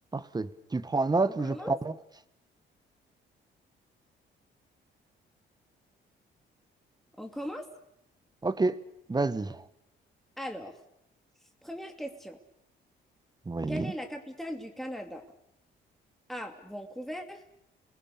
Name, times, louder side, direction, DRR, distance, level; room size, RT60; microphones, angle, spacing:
voice 1, 0.1-1.9 8.4-8.8 9.1-9.6 13.5-13.9, right 3 dB, 20° right, 14 dB, 1.3 m, -29 dB
voice 2, 1.4-1.8 7.2-7.7 10.4-10.8 11.6-12.4 13.7-15.2 16.3-17.4, equal, ahead, 3 dB, 2.7 m, -38 dB
29.5 x 20.5 x 7.0 m, 0.76 s
cardioid pair, 90°, 20 cm